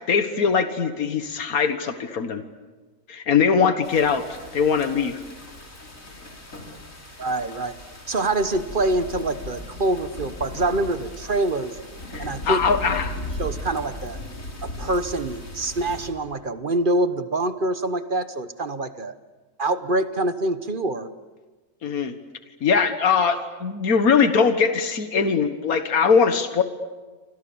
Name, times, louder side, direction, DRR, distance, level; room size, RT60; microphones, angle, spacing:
voice 1, 0.1-2.4 3.1-4.2 4.5-5.2 12.1-13.1 21.8-22.1 22.6-26.6, left 6 dB, 90° left, 9 dB, 1.9 m, -21 dB
sound 1, 3.8-16.1, left 1 dB, 65° left, 4.4 m, -37 dB
voice 2, 7.2-7.8 8.1-11.8 12.2-12.8 13.4-14.2 14.6-19.1 19.6-21.1, right 2 dB, 40° right, 11 dB, 1.1 m, -25 dB
29.5 x 25.0 x 7.1 m, 1.3 s
omnidirectional pair, 1.5 m